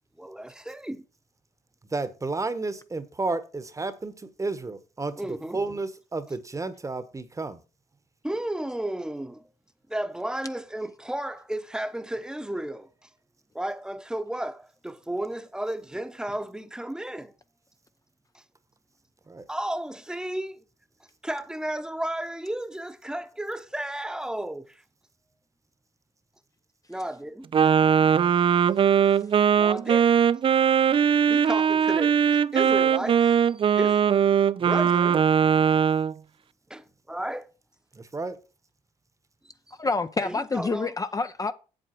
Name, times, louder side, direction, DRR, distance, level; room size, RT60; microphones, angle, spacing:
voice 1, 0.2-1.0 5.2-5.6 8.2-9.4 9.9-13.1 13.5-17.3 18.3-18.4 19.5-20.6 21.2-24.8 26.9-27.5 29.6-30.2 31.3-34.1 34.6-35.3 36.7-37.5 39.7-39.8 40.2-40.9, right 1 dB, 5° right, 1.0 m, -33 dB
voice 2, 1.9-4.1 4.4-7.6 19.3-19.4 38.1-38.4, right 3 dB, 25° right, 1.1 m, -31 dB
Wind instrument woodwind instrument, 27.5-36.1, right 8 dB, 40° right, 0.4 m, -20 dB
voice 3, 39.8-41.5, left 4 dB, 25° left, 0.6 m, -27 dB
7.8 x 7.7 x 4.5 m
supercardioid pair, 70°, 13 cm